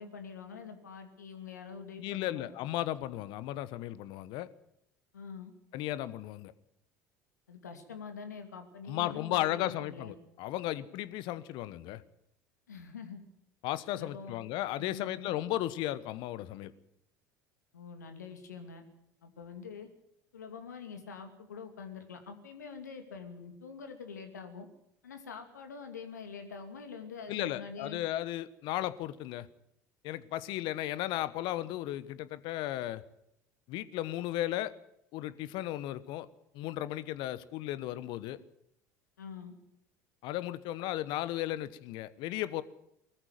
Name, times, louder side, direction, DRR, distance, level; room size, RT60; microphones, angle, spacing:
voice 1, 0.0-2.5 5.1-5.5 7.5-10.1 12.7-13.2 13.9-14.4 14.8-15.3 17.7-18.8 19.2-19.9 20.3-24.7 25.0-28.0 39.2-39.5, left 5 dB, 85° left, 6 dB, 2.6 m, -45 dB
voice 2, 2.0-4.5 5.7-6.5 8.9-12.0 13.6-16.7 27.3-29.5 30.0-33.0 33.7-34.7 35.1-36.3 36.5-38.4 40.2-42.6, left 14 dB, 60° left, 16 dB, 1.2 m, -35 dB
20.0 x 14.0 x 9.3 m, 0.78 s
hypercardioid pair, 70°, 9 cm